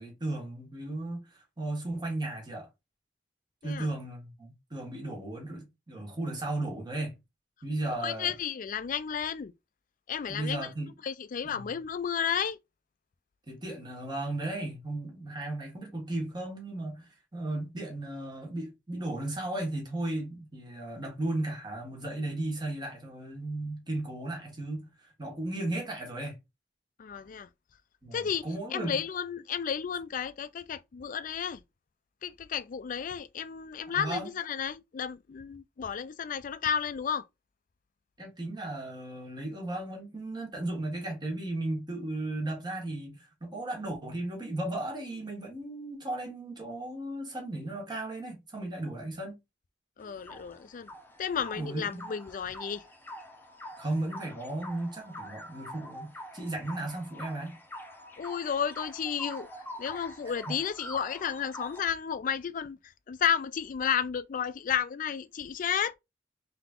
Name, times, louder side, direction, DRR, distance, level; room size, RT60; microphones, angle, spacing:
voice 1, 0.0-2.7 3.6-7.2 7.6-8.3 10.3-10.9 11.4-11.6 13.5-26.4 28.0-29.0 33.9-34.3 38.2-49.4 51.5-52.1 53.8-57.6 60.5-60.6, right 2 dB, 25° right, 1.7 m, -35 dB
voice 2, 8.0-9.5 10.1-10.7 11.0-12.6 27.0-27.5 28.1-31.6 32.2-37.2 50.0-50.9 51.2-52.8 58.2-59.5 59.8-66.0, left 8 dB, 50° left, 0.4 m, -32 dB
sound 1, 50.0-61.9, left 1 dB, 10° left, 0.8 m, -45 dB
3.7 x 2.8 x 3.7 m
head